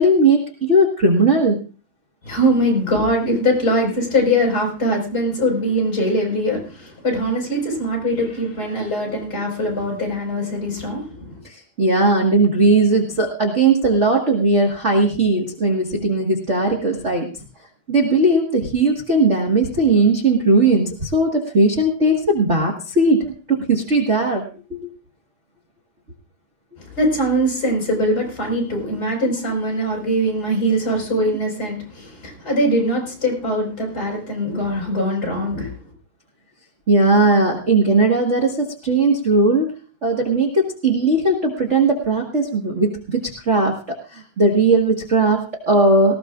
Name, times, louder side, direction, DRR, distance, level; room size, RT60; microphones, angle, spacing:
voice 1, 0.0-1.6 11.4-17.3 17.9-24.4 24.7-24.8 36.9-39.7 40.0-46.2, right 2 dB, 40° right, 1 dB, 1.0 m, -18 dB
voice 2, 2.2-11.4 26.8-35.8, equal, 25° left, -1 dB, 5.6 m, -22 dB
19.0 x 16.0 x 2.5 m, 0.37 s
omnidirectional pair, 3.8 m